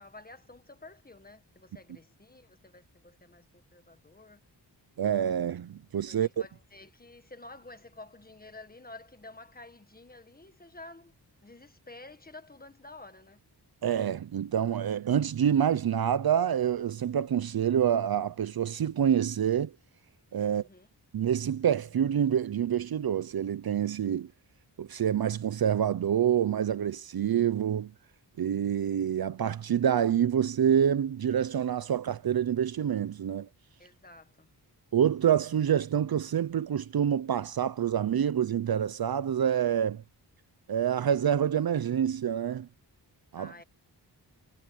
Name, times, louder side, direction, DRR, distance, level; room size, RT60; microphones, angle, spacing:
voice 1, 0.0-4.4 6.1-11.1 11.4-13.4 20.4-20.9 33.8-34.5 43.4-43.6, left 2 dB, 20° left, 1.7 m, -50 dB
voice 2, 5.0-6.3 13.8-19.7 20.3-20.6 21.1-24.3 24.8-27.9 28.4-33.5 34.9-40.0 40.7-42.7 43.3-43.5, right 9 dB, 60° right, 0.7 m, -27 dB
wide cardioid pair, 135°, 41 cm